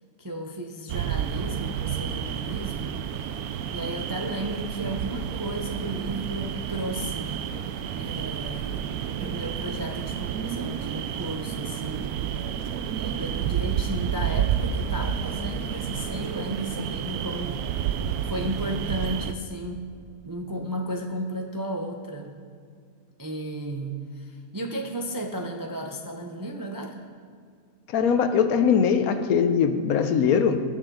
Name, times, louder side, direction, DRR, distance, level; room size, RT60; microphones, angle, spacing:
voice 1, 0.2-3.0 3.7-8.9 9.2-12.1 12.9-17.6 18.3-19.8 20.2-22.3 23.2-27.0, right 1 dB, 30° right, 2 dB, 0.4 m, -34 dB
sound 1, 0.9-19.3, right 9 dB, 85° right, 1.1 m, -30 dB
voice 2, 27.9-30.6, left 7 dB, 75° left, 9 dB, 1.1 m, -21 dB
19.5 x 6.6 x 3.8 m, 2.2 s
omnidirectional pair, 1.6 m